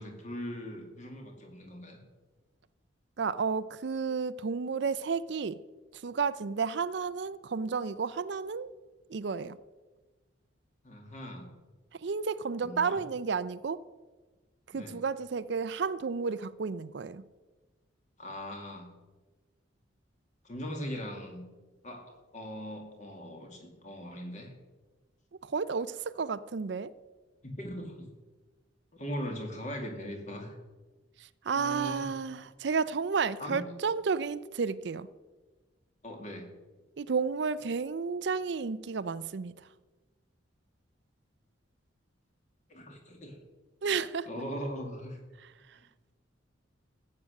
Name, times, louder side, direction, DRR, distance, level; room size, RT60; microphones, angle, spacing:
voice 1, 0.0-2.0 10.8-11.5 12.6-13.0 14.7-15.0 18.2-18.9 20.4-21.4 21.8-24.5 27.4-28.1 28.9-30.6 31.5-32.1 33.4-33.6 36.0-36.5 42.7-43.4 44.3-45.2, equal, 40° left, 2.3 m, -40 dB
voice 2, 3.2-5.6 5.9-8.7 9.1-9.6 11.9-13.8 14.7-17.2 25.4-26.9 31.2-35.1 37.0-39.5 43.8-44.3 45.4-45.8, right 5 dB, 60° right, 0.4 m, -32 dB
14.0 x 8.6 x 6.5 m
head